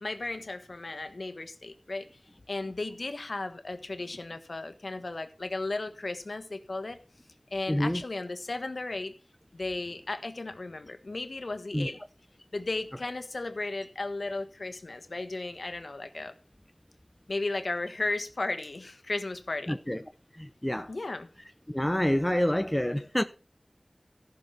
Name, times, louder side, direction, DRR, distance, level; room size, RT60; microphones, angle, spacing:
voice 1, 0.0-2.1 2.5-7.0 7.5-9.1 9.5-12.0 12.5-16.3 17.3-19.8 20.9-21.3, left 2 dB, 90° left, 1.3 m, -35 dB
voice 2, 7.7-8.0 11.7-11.9 19.7-20.0 20.3-20.9 21.7-23.2, left 1 dB, 15° left, 0.7 m, -27 dB
14.5 x 6.3 x 5.6 m
wide cardioid pair, 50°, 0 cm